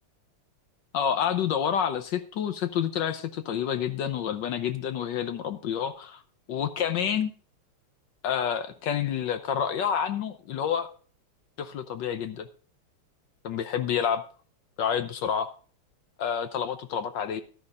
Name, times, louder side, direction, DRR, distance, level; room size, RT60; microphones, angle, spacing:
voice 1, 0.9-6.2 6.5-7.3 8.2-10.9 11.6-12.5 13.4-14.2 14.8-15.5 16.2-17.4, left 8 dB, 70° left, 10 dB, 1.2 m, -28 dB
14.0 x 11.5 x 2.5 m, 0.42 s
omnidirectional pair, 2.4 m